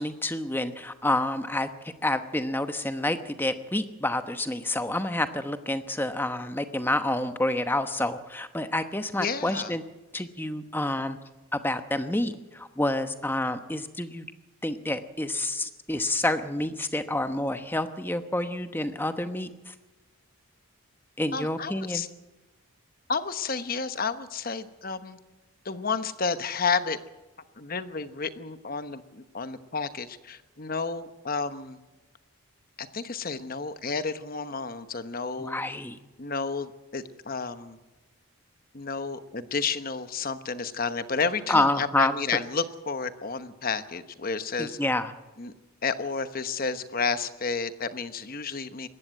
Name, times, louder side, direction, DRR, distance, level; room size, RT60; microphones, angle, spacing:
voice 1, 0.0-9.8 10.1-11.2 11.5-14.3 14.6-19.7 21.2-22.0 35.4-36.0 41.5-42.1 44.6-45.1, left 1 dB, 10° left, 9 dB, 1.0 m, -28 dB
voice 2, 9.2-9.7 21.3-22.1 23.1-25.2 25.6-27.0 27.6-31.8 32.8-35.6 36.2-37.8 38.7-44.8 45.4-45.5 45.8-48.9, left 5 dB, 40° left, 11 dB, 1.0 m, -31 dB
20.0 x 15.5 x 9.1 m, 1.1 s
head